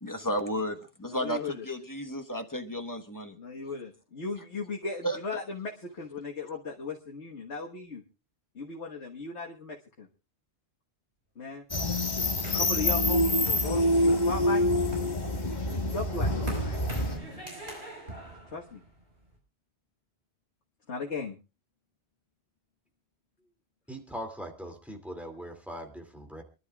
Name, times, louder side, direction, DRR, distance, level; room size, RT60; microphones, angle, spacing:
voice 1, 0.0-3.4 5.0-5.2, equal, 20° left, 1.2 m, -33 dB
voice 2, 1.1-1.7 3.4-8.0 8.6-10.1 11.4-11.6 12.3-14.6 15.7-16.8 18.5-18.8 20.9-21.4, left 3 dB, 85° left, 1.8 m, -37 dB
sound 1, 11.7-17.2, left 1 dB, 40° left, 2.1 m, -26 dB
sound 2, 12.4-14.3 14.7-19.4, right 1 dB, 70° right, 5.4 m, -42 dB
voice 3, 23.9-26.4, equal, ahead, 2.5 m, -40 dB
27.5 x 11.5 x 2.4 m
omnidirectional pair, 1.1 m